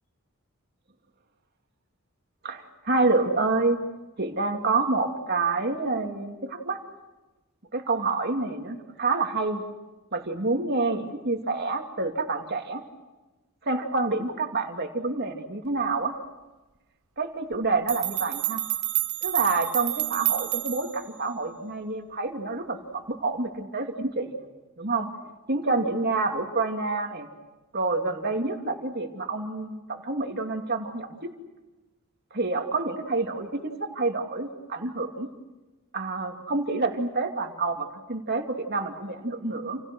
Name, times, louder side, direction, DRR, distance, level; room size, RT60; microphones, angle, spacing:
voice 1, 2.4-3.8 4.2-6.8 7.7-9.6 10.1-12.8 13.6-16.1 17.2-18.6 19.2-24.4 24.8-25.1 25.5-27.3 27.7-31.3 32.3-35.3 35.9-39.8, right 3 dB, 45° right, 4 dB, 2.8 m, -28 dB
sound 1, 17.5-17.6 17.9-21.0, right 15 dB, 70° right, 1.0 m, -29 dB
29.5 x 29.0 x 6.3 m, 1.1 s
head